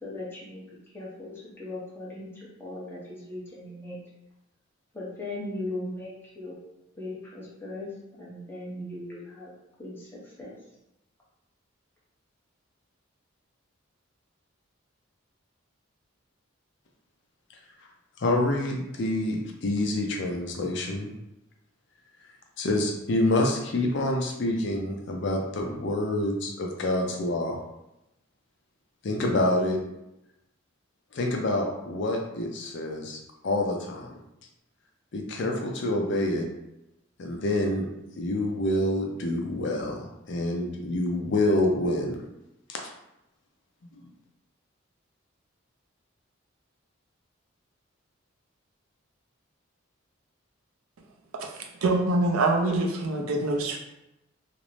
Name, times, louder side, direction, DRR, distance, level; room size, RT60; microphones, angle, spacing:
voice 1, 0.0-0.6 0.9-4.0 4.9-6.6 6.9-7.9 8.2-9.5 9.8-10.5, left 1 dB, 10° left, -7 dB, 0.7 m, -38 dB
voice 2, 18.2-21.1 22.6-27.6 29.0-29.8 31.1-34.2 35.1-36.5 37.2-37.8 38.2-42.2 42.7-42.9 43.9-44.1, left 1 dB, 55° left, 1 dB, 0.4 m, -27 dB
voice 3, 51.6-53.8, right 2 dB, 85° right, 2 dB, 0.5 m, -25 dB
2.5 x 2.0 x 3.0 m, 0.88 s
head